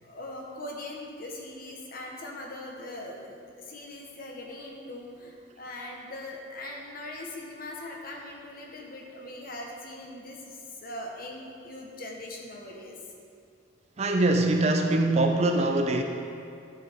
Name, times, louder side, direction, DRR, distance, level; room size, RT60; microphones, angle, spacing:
voice 1, 0.0-13.0, left 1 dB, 50° left, -1 dB, 1.1 m, -41 dB
voice 2, 14.0-16.0, right 2 dB, 35° right, 4 dB, 0.5 m, -23 dB
11.5 x 6.6 x 3.5 m, 2.5 s
head